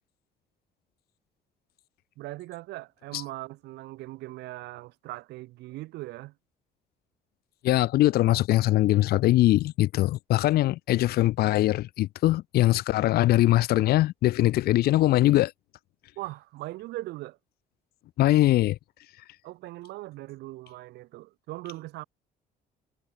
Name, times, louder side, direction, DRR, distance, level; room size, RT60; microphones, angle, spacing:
voice 1, 2.2-6.3 16.1-17.4 19.4-22.0, right 18 dB, 85° right, 3.5 m, -40 dB
voice 2, 7.6-15.5 18.2-18.8, left 16 dB, 70° left, 0.6 m, -22 dB
cardioid pair, 110°, 17 cm